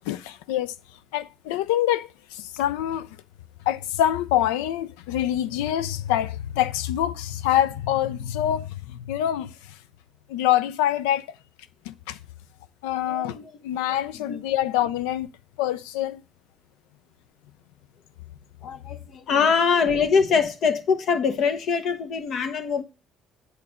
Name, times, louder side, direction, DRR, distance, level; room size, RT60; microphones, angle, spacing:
voice 1, 0.1-0.7 1.1-2.1 2.5-3.1 3.7-9.5 10.3-11.3 12.1-12.2 12.8-13.4 13.6-15.3 15.6-16.2, left 12 dB, 80° left, 0.3 m, -25 dB
voice 2, 13.1-13.5 13.9-14.4 18.6-22.8, left 5 dB, 60° left, 0.9 m, -23 dB
8.3 x 3.1 x 6.2 m
hypercardioid pair, 55°, 0 cm